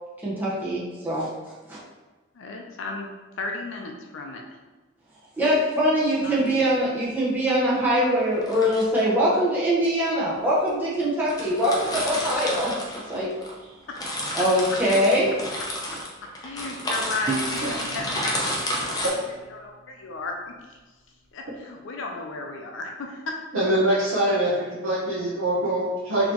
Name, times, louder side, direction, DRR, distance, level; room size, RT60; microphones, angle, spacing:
voice 1, 0.2-1.3 1.7-1.8 5.4-12.7 13.1-13.3 14.3-15.3, equal, 10° right, -8 dB, 1.0 m, -23 dB
voice 2, 2.3-3.1 3.4-4.4 6.2-6.6 12.1-12.3 13.9-14.5 16.4-19.0 19.5-20.3 20.7-20.8 21.3-23.4, left 3 dB, 70° left, 2 dB, 0.4 m, -34 dB
sound 1, 6.2-6.5 8.3-9.0 9.8-9.9 10.7-10.8 11.0-11.1 11.3-13.5 13.8-19.1, equal, 20° left, 0.6 m, -31 dB
Guitar, 17.3-20.5, right 3 dB, 30° right, 0.4 m, -36 dB
voice 3, 23.5-26.3, right 1 dB, 85° right, -6 dB, 0.8 m, -23 dB
4.1 x 2.9 x 2.9 m, 1.2 s
head